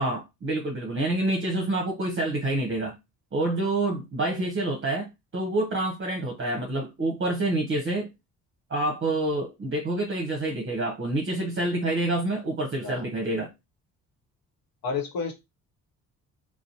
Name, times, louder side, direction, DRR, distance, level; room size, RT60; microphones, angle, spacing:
voice 1, 0.0-3.0 3.3-8.1 8.7-13.5, right 2 dB, 30° right, 0.8 m, -27 dB
voice 2, 14.8-15.3, left 5 dB, 60° left, 0.9 m, -31 dB
2.5 x 2.0 x 2.8 m
hypercardioid pair, 55°, 39 cm